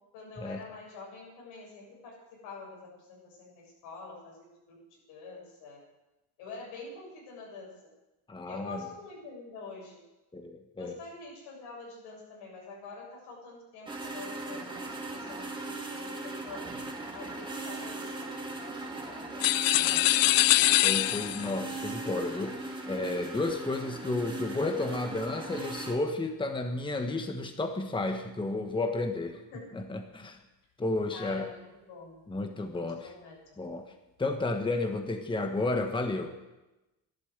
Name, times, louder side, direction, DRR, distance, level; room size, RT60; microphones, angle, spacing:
voice 1, 0.1-2.2 2.4-5.8 6.4-7.7 8.4-10.0 10.8-16.6 17.1-19.5 29.5-29.9 31.1-32.2 32.7-33.4, left 3 dB, 80° left, -2 dB, 7.3 m, -46 dB
voice 2, 8.3-8.8 10.3-11.0 19.8-20.1 20.8-29.4 29.7-30.4 30.8-31.5 32.3-33.1 33.6-33.9 34.2-36.3, left 2 dB, 10° left, 6 dB, 1.3 m, -32 dB
sound 1, 13.9-26.0, right 2 dB, 10° right, 2.7 m, -39 dB
sound 2, 19.4-21.6, left 18 dB, 60° left, 0.5 m, -23 dB
13.0 x 11.5 x 8.0 m, 1.0 s
cardioid pair, 110°, 40 cm